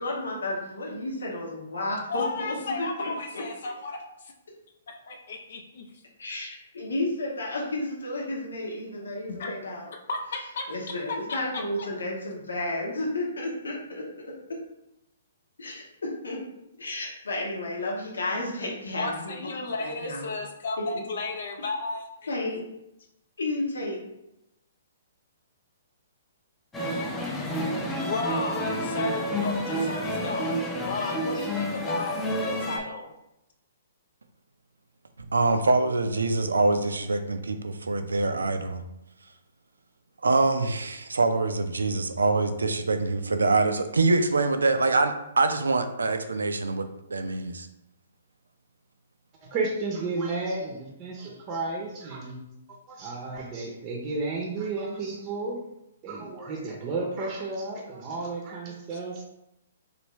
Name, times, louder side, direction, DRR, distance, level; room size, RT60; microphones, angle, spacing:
voice 1, 0.0-3.4 6.2-9.9 10.7-14.0 15.6-16.4 16.8-19.3 19.8-20.3 20.8-21.0 22.3-22.6 23.4-24.0, left 2 dB, 85° left, -3 dB, 0.8 m, -32 dB
voice 2, 2.1-4.0 4.2-4.3 4.9-5.9 9.3-9.5 10.1-10.7 11.8-11.9 18.9-22.0 28.0-30.5 30.8-33.1, left 3 dB, 65° left, 2 dB, 0.5 m, -33 dB
sound 1, 26.7-32.8, equal, 10° left, 0.5 m, -29 dB
voice 3, 35.3-38.8 40.2-47.7, right 3 dB, 85° right, 8 dB, 0.4 m, -24 dB
voice 4, 49.4-52.4 52.9-55.6 56.0-59.2, right 3 dB, 30° right, -1 dB, 0.6 m, -32 dB
3.3 x 2.6 x 3.0 m, 0.87 s
hypercardioid pair, 130°, 0 cm